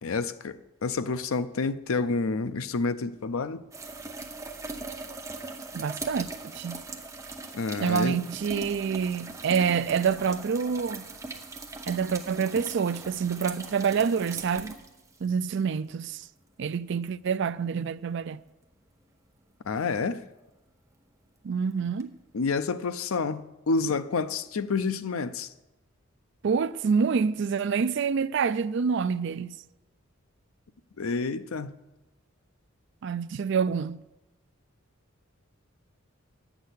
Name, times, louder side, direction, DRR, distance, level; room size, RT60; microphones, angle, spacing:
voice 1, 0.0-3.6 7.5-8.2 19.6-20.2 22.3-25.5 31.0-31.7, left 4 dB, 85° left, 0.6 m, -29 dB
sound 1, 3.7-15.5 17.1-17.2 22.0-22.1, right 3 dB, 15° right, 0.7 m, -40 dB
voice 2, 5.7-6.8 7.8-11.0 11.9-14.8 15.2-16.2 16.6-18.4 21.4-22.1 26.4-29.6 33.0-34.0, right 6 dB, 60° right, 0.4 m, -27 dB
10.5 x 6.1 x 8.2 m
head